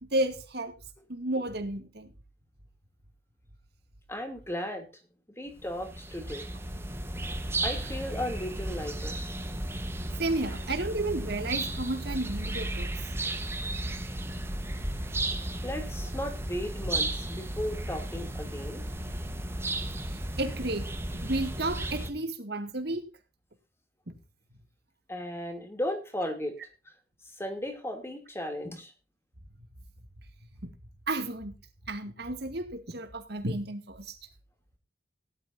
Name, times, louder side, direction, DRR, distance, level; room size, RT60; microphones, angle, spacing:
voice 1, 0.1-0.7 1.1-2.1 10.2-12.9 20.4-23.0 24.1-24.2 30.6-30.7 31.1-31.5 31.9-34.1, right 2 dB, 60° right, 7 dB, 2.3 m, -32 dB
voice 2, 4.1-4.9 5.4-6.4 7.6-9.2 15.6-18.8 25.1-26.6 27.2-28.9, left 1 dB, 15° left, 6 dB, 2.7 m, -35 dB
sound 1, 5.5-22.1, right 1 dB, 15° right, 1.2 m, -34 dB
18.0 x 11.5 x 2.7 m, 0.31 s
head